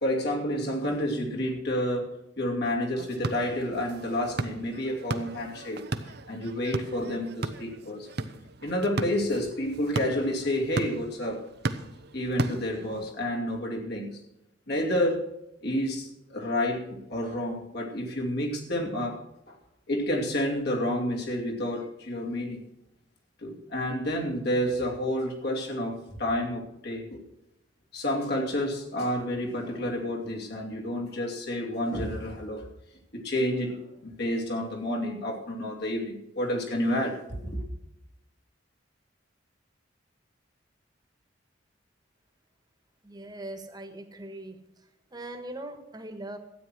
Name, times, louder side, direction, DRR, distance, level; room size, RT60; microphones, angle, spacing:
voice 1, 0.0-5.8 6.3-8.1 8.6-11.4 12.1-14.2 14.7-15.3 15.6-19.2 19.5-19.6 19.9-22.6 23.4-27.2 27.9-32.7 33.1-37.6, left 1 dB, 60° left, 0 dB, 2.6 m, -30 dB
sound 1, 3.0-13.1, right 2 dB, 55° right, 0.8 m, -36 dB
voice 2, 43.0-44.6 45.1-46.4, right 1 dB, 20° right, 6 dB, 1.5 m, -40 dB
13.0 x 9.1 x 6.2 m, 0.86 s
head